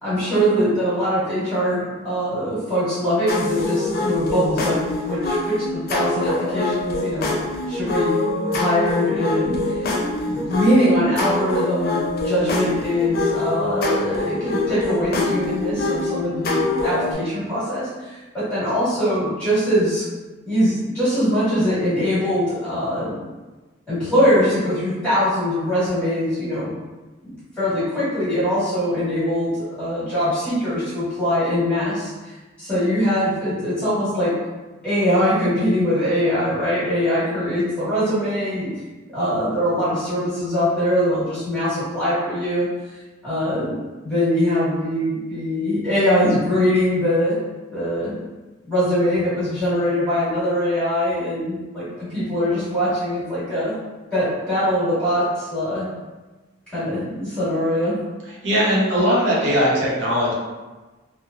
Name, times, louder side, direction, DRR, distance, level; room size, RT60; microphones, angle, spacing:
voice 1, 0.0-7.4 7.7-8.2 8.5-9.8 10.3-20.0 20.4-23.1 23.9-26.7 27.2-32.3 32.6-34.3 34.8-38.7 39.1-42.7 43.2-47.4 47.7-48.1 48.6-53.7 54.1-55.9 56.7-58.0, equal, 5° left, -13 dB, 1.5 m, -22 dB
sound 1, 3.3-17.1, left 2 dB, 50° left, 0.4 m, -24 dB
voice 2, 58.4-60.3, equal, 60° right, -5 dB, 0.7 m, -19 dB
3.1 x 2.0 x 2.3 m, 1.2 s
head